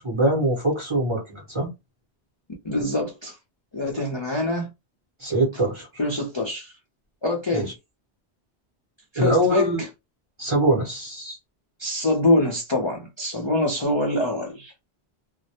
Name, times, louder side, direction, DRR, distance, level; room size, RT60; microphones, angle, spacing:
voice 1, 0.0-1.7 5.2-5.9 7.5-7.7 9.2-9.8 10.4-11.4, right 1 dB, 30° right, 0.7 m, -23 dB
voice 2, 2.6-3.4 3.7-4.7 6.0-6.7 7.2-7.7 9.1-9.9 11.8-14.7, left 2 dB, 35° left, 0.4 m, -24 dB
2.1 x 2.1 x 2.8 m
omnidirectional pair, 1.1 m